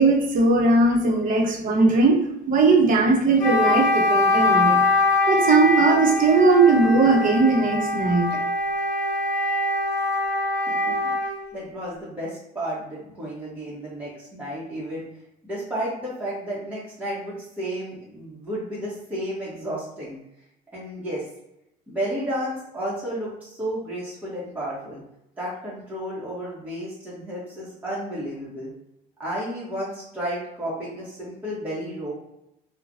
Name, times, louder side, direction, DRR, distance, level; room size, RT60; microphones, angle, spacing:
voice 1, 0.0-2.2 2.5-4.8 5.3-8.4, right 3 dB, 55° right, 0 dB, 0.8 m, -19 dB
Wind instrument woodwind instrument, 3.4-11.4, left 2 dB, 50° left, 1.3 m, -23 dB
voice 2, 11.2-15.0 15.4-20.2 20.7-21.2 21.9-25.0 25.4-28.7 29.2-32.1, right 1 dB, 10° right, -8 dB, 1.0 m, -32 dB
3.1 x 2.1 x 2.5 m, 0.83 s
cardioid pair, 110°, 17 cm